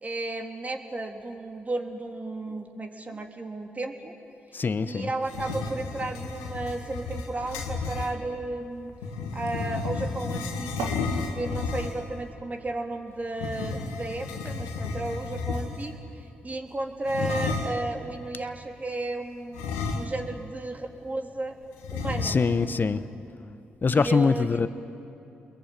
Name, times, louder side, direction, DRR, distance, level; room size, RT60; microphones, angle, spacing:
voice 1, 0.0-4.1 4.9-8.9 9.3-10.9 11.3-19.6 19.9-21.6 21.9-22.4 23.9-24.5, right 2 dB, 30° right, 3 dB, 3.6 m, -33 dB
voice 2, 4.5-5.1 22.2-23.0 23.8-24.7, left 4 dB, 45° left, 13 dB, 1.2 m, -23 dB
sound 1, 4.6-11.1, right 4 dB, 85° right, 2.9 m, -43 dB
sound 2, 5.2-8.1 9.0-12.1 13.3-16.0 17.0-17.9 19.5-20.4 20.7-20.8 21.8-22.7, left 4 dB, 85° left, 2.1 m, -32 dB
28.5 x 22.0 x 9.5 m, 2.9 s
hypercardioid pair, 40°, 5 cm